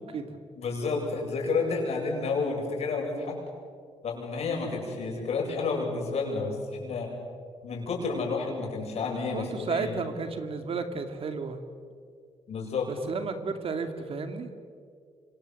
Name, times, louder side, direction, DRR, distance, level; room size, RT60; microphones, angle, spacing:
voice 1, 0.0-0.4 9.3-11.6 12.9-14.5, right 4 dB, 55° right, 7 dB, 2.5 m, -33 dB
voice 2, 0.5-3.4 4.0-7.1 7.6-10.0 12.5-12.9, left 4 dB, 65° left, 0 dB, 8.0 m, -30 dB
26.0 x 26.0 x 7.8 m, 2.1 s
cardioid pair, 105°, 12 cm